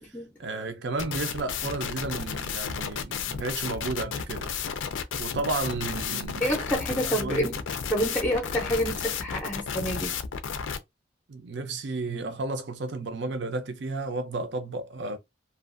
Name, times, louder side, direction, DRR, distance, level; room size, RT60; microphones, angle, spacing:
voice 1, 0.0-4.5 5.2-7.6 11.3-15.2, right 3 dB, 65° right, 0.5 m, -33 dB
sound 1, 1.0-10.8, left 7 dB, 85° left, 0.4 m, -32 dB
voice 2, 6.4-7.6 7.9-10.2, equal, 10° left, 0.5 m, -28 dB
2.5 x 2.4 x 2.4 m
head